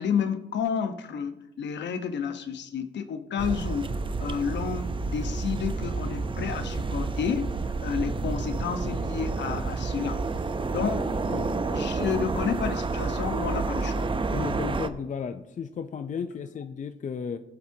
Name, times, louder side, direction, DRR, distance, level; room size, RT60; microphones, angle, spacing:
voice 1, 0.0-7.5 7.8-10.2 10.7-11.1 11.4-14.1, left 7 dB, 65° left, 8 dB, 1.1 m, -31 dB
sound 1, 3.4-14.9, right 3 dB, 25° right, 0.7 m, -30 dB
voice 2, 14.3-17.4, left 6 dB, 40° left, 8 dB, 0.6 m, -34 dB
20.5 x 7.6 x 2.8 m, 0.96 s
cardioid pair, 90°, 20 cm